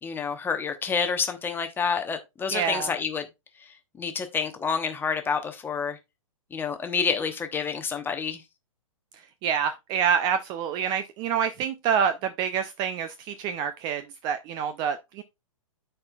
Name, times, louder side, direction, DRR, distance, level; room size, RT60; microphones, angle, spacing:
voice 1, 0.0-3.2 4.0-6.0 6.5-8.4, left 6 dB, 10° left, 0.9 m, -28 dB
voice 2, 2.5-2.9 9.2-15.2, right 7 dB, 25° right, 0.4 m, -27 dB
13.0 x 4.5 x 2.3 m
hypercardioid pair, 125°, 18 cm